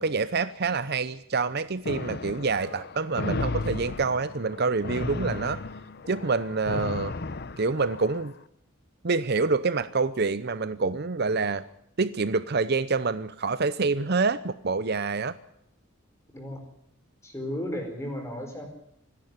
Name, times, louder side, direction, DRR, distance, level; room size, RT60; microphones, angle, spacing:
voice 1, 0.0-5.6 6.1-7.1 7.6-8.3 9.0-11.6 12.0-15.3, right 4 dB, 50° right, 14 dB, 0.7 m, -27 dB
sound 1, 1.9-8.3, left 3 dB, 50° left, 0.8 m, -34 dB
voice 2, 17.2-18.7, equal, 15° left, 4 dB, 4.7 m, -34 dB
25.5 x 11.0 x 9.7 m, 0.75 s
head